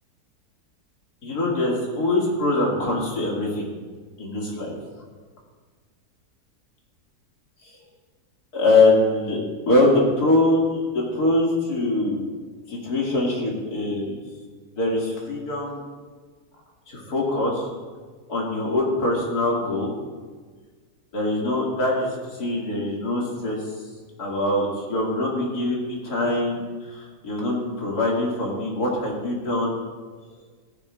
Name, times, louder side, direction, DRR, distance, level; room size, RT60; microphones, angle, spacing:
voice 1, 1.2-3.7 4.2-4.8 8.5-9.4 9.7-12.2 12.7-14.2 14.7-15.8 16.9-17.7 18.3-19.9 21.1-22.1 22.4-23.6 24.2-26.6 26.9-29.7, left 2 dB, 70° left, -3 dB, 2.5 m, -23 dB
15.0 x 10.0 x 2.4 m, 1.4 s
omnidirectional pair, 1.7 m